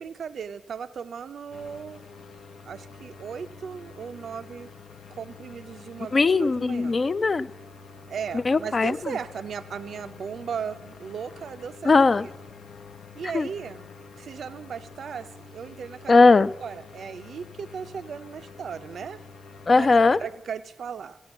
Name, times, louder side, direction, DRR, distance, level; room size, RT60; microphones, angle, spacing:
voice 1, 0.0-2.0 2.7-4.7 5.1-7.0 8.1-11.9 12.2-12.3 13.1-13.9 14.2-16.3 16.6-19.2 19.7-19.9 20.2-21.2, right 7 dB, 70° right, 9 dB, 0.4 m, -36 dB
sound 1, 1.5-20.3, left 4 dB, 80° left, 0.8 m, -47 dB
voice 2, 6.1-7.5 8.5-9.0 11.9-12.3 13.3-13.5 16.1-16.5 19.7-20.2, left 3 dB, 45° left, 16 dB, 0.4 m, -19 dB
14.5 x 8.0 x 7.0 m, 1.1 s
cardioid pair, 60°, 0 cm